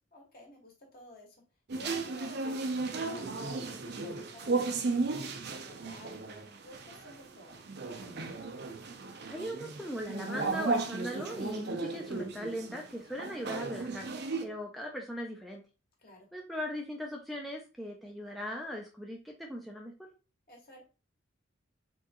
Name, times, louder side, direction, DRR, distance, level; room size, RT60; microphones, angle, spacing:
voice 1, 0.1-1.4 1.7-7.6 7.9-8.3 16.0-16.3 20.5-20.8, left 1 dB, 50° left, -1 dB, 1.8 m, -53 dB
sound 1, 1.7-14.4, right 3 dB, 55° right, 0.6 m, -35 dB
voice 2, 9.3-14.1 14.4-15.6 16.3-19.9, equal, ahead, 0 dB, 0.5 m, -39 dB
4.6 x 3.6 x 2.9 m, 0.33 s
head